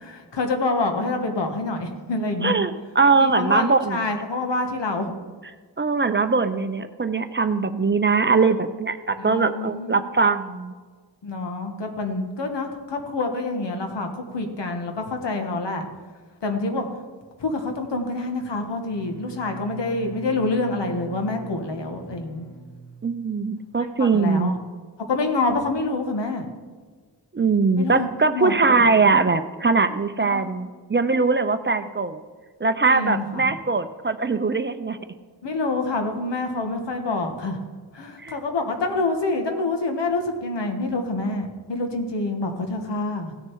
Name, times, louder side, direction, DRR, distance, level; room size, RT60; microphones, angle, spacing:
voice 1, 0.0-2.6 3.1-5.1 9.2-10.0 11.2-15.9 16.4-16.9 17.4-22.5 23.8-24.6 25.1-26.4 27.8-28.8 30.2-30.5 32.9-33.6 35.4-37.6 37.9-43.3, left 2 dB, 75° left, 5 dB, 1.5 m, -27 dB
voice 2, 2.4-4.0 5.8-10.7 23.0-24.6 27.3-32.2 32.6-35.0 38.2-38.4, right 4 dB, 25° right, 10 dB, 0.6 m, -21 dB
Bowed string instrument, 18.8-23.5, right 2 dB, 55° left, 2.3 m, -42 dB
16.5 x 6.5 x 4.7 m, 1.5 s
wide cardioid pair, 85°, 43 cm